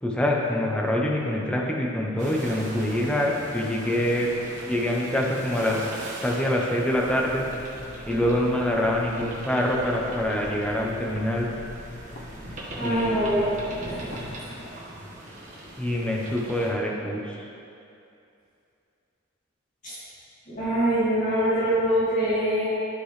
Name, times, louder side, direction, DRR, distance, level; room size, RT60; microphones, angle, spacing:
voice 1, 0.0-4.3 4.7-5.8 6.2-7.4 8.1-11.5 12.8-13.3 15.8-17.4, left 1 dB, 5° left, -2 dB, 0.9 m, -25 dB
sound 1, 2.2-16.7, right 1 dB, 40° right, 1.4 m, -40 dB
sound 2, 6.9-9.4 9.6-14.3, left 1 dB, 70° left, 1.0 m, -42 dB
voice 2, 12.8-13.5 13.8-14.0 19.8-19.9 20.5-22.7, right 1 dB, 40° left, -13 dB, 2.1 m, -24 dB
11.5 x 6.1 x 3.3 m, 2.6 s
head